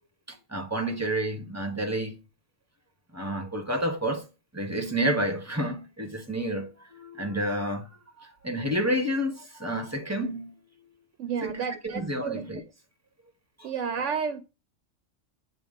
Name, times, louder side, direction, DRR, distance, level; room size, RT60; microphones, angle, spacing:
voice 1, 0.3-2.2 3.1-4.3 4.5-10.6 11.4-11.6 11.9-12.6 13.6-13.7, right 1 dB, 15° right, 1.2 m, -30 dB
voice 2, 11.2-12.4 13.6-14.4, right 6 dB, 70° right, 1.1 m, -31 dB
8.1 x 3.2 x 5.2 m
omnidirectional pair, 1.3 m